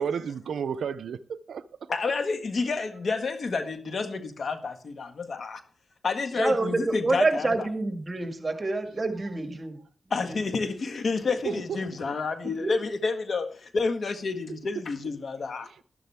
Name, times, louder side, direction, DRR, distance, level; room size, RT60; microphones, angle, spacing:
voice 1, 0.0-1.7 11.4-11.8 15.6-15.7, right 7 dB, 85° right, 0.5 m, -32 dB
voice 2, 1.9-5.6 6.0-7.5 10.1-15.8, left 4 dB, 65° left, 1.5 m, -29 dB
voice 3, 6.3-9.8 10.2-10.7 12.4-12.7, right 3 dB, 35° right, 2.1 m, -28 dB
12.5 x 12.0 x 3.4 m
cardioid pair, 55°, 0 cm